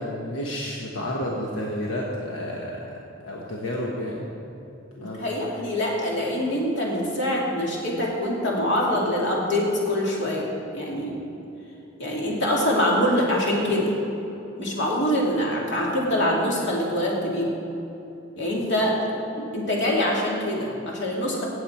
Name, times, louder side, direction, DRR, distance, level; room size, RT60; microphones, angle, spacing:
voice 1, 0.0-2.9 3.2-4.3 5.0-5.2, left 1 dB, 90° left, -3 dB, 1.3 m, -30 dB
voice 2, 5.0-10.5 10.7-11.1 12.0-13.9 14.6-17.5 18.4-18.9 19.4-21.4, left 1 dB, 65° left, -3 dB, 2.6 m, -24 dB
16.5 x 7.9 x 4.4 m, 3.0 s
head